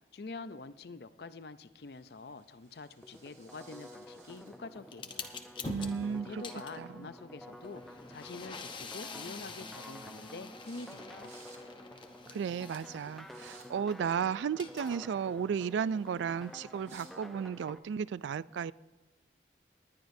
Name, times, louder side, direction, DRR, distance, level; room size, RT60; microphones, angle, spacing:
voice 1, 0.1-5.4 6.0-11.3, left 3 dB, 65° left, 13 dB, 0.6 m, -46 dB
sound 1, 1.8-4.9 5.1-6.6 8.0-8.1 8.4-8.6 8.9-9.6 10.0-10.3 10.6-11.0 11.2-11.6 12.0-12.3 12.6-12.8 13.2-13.7 14.9-17.1, right 4 dB, 40° right, 2.3 m, -61 dB
sound 2, 3.0-17.8, equal, ahead, 0.6 m, -50 dB
sound 3, 4.9-14.0 14.4-17.1, left 4 dB, 25° left, 0.9 m, -47 dB
voice 2, 5.6-6.3 6.8-7.1 12.3-18.7, right 7 dB, 90° right, 20 dB, 0.3 m, -34 dB
19.5 x 11.5 x 2.7 m, 1.3 s
head